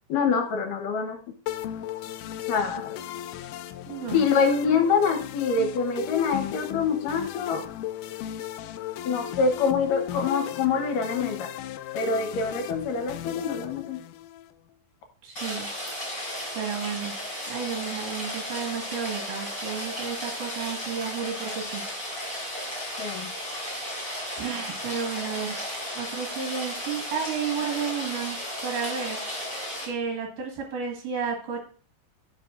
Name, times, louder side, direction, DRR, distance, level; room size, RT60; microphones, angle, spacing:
voice 1, 0.1-1.2 2.5-3.0 4.1-7.6 9.1-11.5 11.9-14.0 23.0-23.3, left 5 dB, 70° left, 4 dB, 2.5 m, -25 dB
sound 1, 1.5-14.5, left 12 dB, 85° left, 1.9 m, -36 dB
voice 2, 3.9-4.2 15.2-15.7 16.5-17.1 17.5-21.8 24.4-25.5 25.9-28.4 28.6-29.2 29.8-31.6, right 6 dB, 65° right, 1 dB, 3.2 m, -32 dB
Rain, 15.3-29.9, equal, 15° left, 3.8 m, -34 dB
16.0 x 5.6 x 2.5 m, 0.43 s
omnidirectional pair, 4.2 m